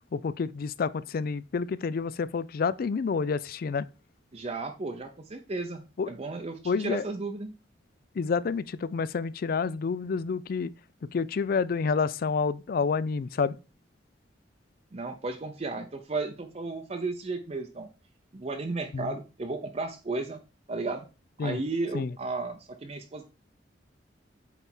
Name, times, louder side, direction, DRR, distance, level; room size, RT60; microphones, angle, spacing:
voice 1, 0.1-3.9 6.0-6.1 6.7-7.0 8.2-10.7 11.1-13.6 18.9-19.0 21.4-21.6 21.9-22.1, left 5 dB, 55° left, 0.4 m, -28 dB
voice 2, 4.3-7.5 14.9-17.9 18.3-20.4 20.7-21.1 21.4-23.3, right 3 dB, 35° right, 0.7 m, -34 dB
8.2 x 3.4 x 4.3 m
head